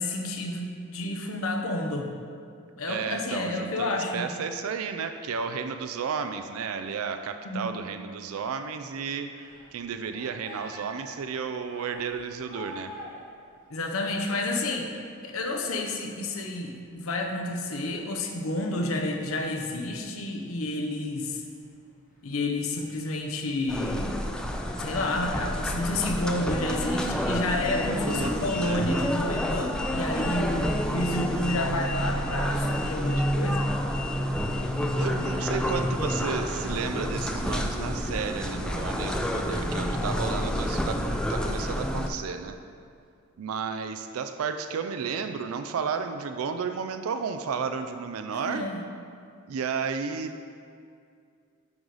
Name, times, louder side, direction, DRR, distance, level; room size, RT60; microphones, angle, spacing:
voice 1, 0.0-2.1 2.8-4.3 7.4-7.6 13.7-14.9 15.2-21.4 22.2-24.3 24.8-33.7 48.3-48.8, left 2 dB, 70° left, 3 dB, 0.8 m, -30 dB
voice 2, 2.9-12.9 28.0-28.9 33.2-33.3 35.0-42.6 43.4-48.7 49.5-50.4, right 6 dB, 80° right, 8 dB, 0.4 m, -33 dB
sound 1, 9.3-14.6 15.0-15.1 15.4-28.5, left 2 dB, 40° left, 1.1 m, -47 dB
sound 2, 23.7-42.1, equal, 5° left, 0.4 m, -29 dB
8.6 x 4.0 x 4.8 m, 2.4 s
head